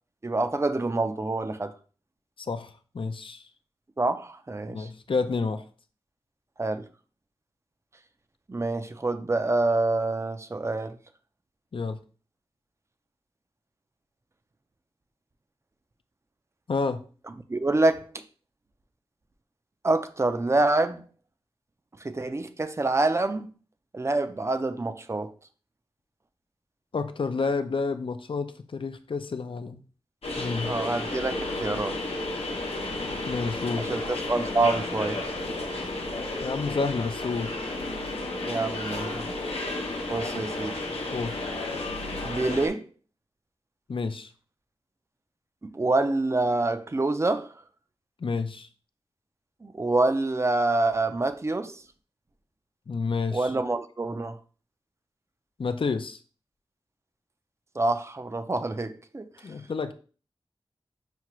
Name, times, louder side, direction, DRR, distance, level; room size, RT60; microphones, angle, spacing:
voice 1, 0.2-1.8 4.0-4.9 6.6-6.8 8.5-11.0 17.5-18.2 19.8-21.1 22.0-23.5 23.9-25.3 30.5-32.0 33.8-35.4 38.5-39.3 40.1-40.8 42.2-42.9 45.6-47.5 49.6-51.8 53.3-54.4 57.8-59.3, right 2 dB, 30° right, 0.4 m, -26 dB
voice 2, 2.5-3.4 4.7-5.6 11.7-12.0 16.7-17.0 26.9-29.8 30.4-30.8 33.2-33.9 36.4-37.6 40.3-40.4 41.1-41.4 43.9-44.3 48.2-48.7 52.9-53.5 55.6-56.2 59.4-59.9, left 4 dB, 60° left, 0.4 m, -29 dB
sound 1, 30.2-42.7, left 2 dB, 80° left, 0.8 m, -32 dB
5.8 x 2.4 x 3.0 m
wide cardioid pair, 55°, 10 cm